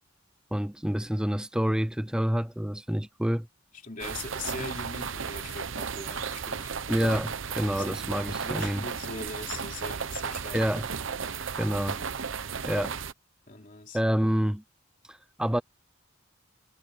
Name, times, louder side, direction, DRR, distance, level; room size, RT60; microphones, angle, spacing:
voice 1, 0.5-3.5 6.9-8.8 10.5-10.9 11.6-12.0 12.6-13.0 13.9-14.6 15.1-15.6, equal, 5° right, 0.5 m, -28 dB
voice 2, 3.8-6.7 7.6-7.9 8.4-10.6 11.1-11.4 13.5-14.0, left 3 dB, 40° left, 3.3 m, -41 dB
sound 1, 4.0-13.1, right 6 dB, 65° right, 0.9 m, -34 dB
head